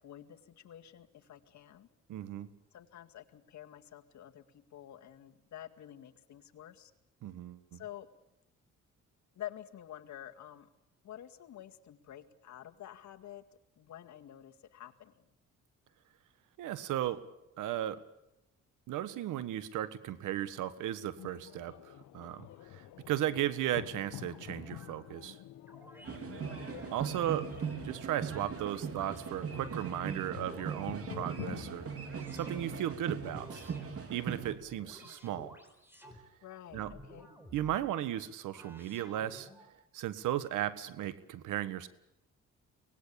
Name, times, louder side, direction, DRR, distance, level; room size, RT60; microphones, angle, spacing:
voice 1, 0.0-1.9 2.7-4.4 4.7-6.9 7.7-8.1 9.4-10.7 11.0-13.4 13.8-15.1 26.3-27.4 34.8-35.3 36.4-37.3, left 11 dB, 70° left, 6 dB, 2.0 m, -49 dB
voice 2, 2.1-2.5 7.2-7.8 16.6-17.2 17.6-18.0 18.9-22.5 22.7-25.4 26.9-31.9 32.3-33.7 34.1-35.6 36.7-36.9 37.5-39.5 39.9-41.9, right 12 dB, 85° right, 15 dB, 1.5 m, -36 dB
sound 1, 21.2-32.9, left 14 dB, 90° left, 1.1 m, -48 dB
Robot Noises, 24.3-25.0 25.7-26.2 26.6-28.4 28.9-29.8 30.2-31.4 32.1-32.7 33.2-33.9 34.3-36.2 36.7-37.9 38.5-39.7, equal, 5° right, 4.8 m, -53 dB
sound 2, 26.0-34.5, right 6 dB, 50° right, 3.7 m, -40 dB
24.5 x 19.0 x 8.7 m, 0.88 s
cardioid pair, 90°, 30 cm